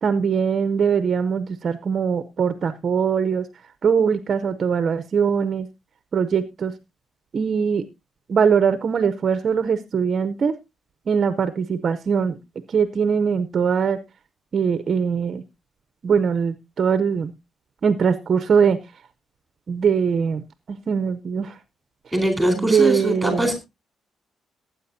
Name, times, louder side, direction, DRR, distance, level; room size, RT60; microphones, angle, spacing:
voice 1, 0.0-3.5 3.8-5.7 6.1-6.7 7.3-7.8 8.3-10.5 11.1-12.4 12.7-14.0 14.5-15.4 16.0-17.3 17.8-18.8 19.7-21.6 22.6-23.5, right 6 dB, 35° right, 12 dB, 0.6 m, -21 dB
voice 2, 22.1-23.5, right 1 dB, ahead, 4 dB, 4.0 m, -22 dB
19.0 x 8.7 x 2.7 m, 0.24 s
cardioid pair, 165°, 0 cm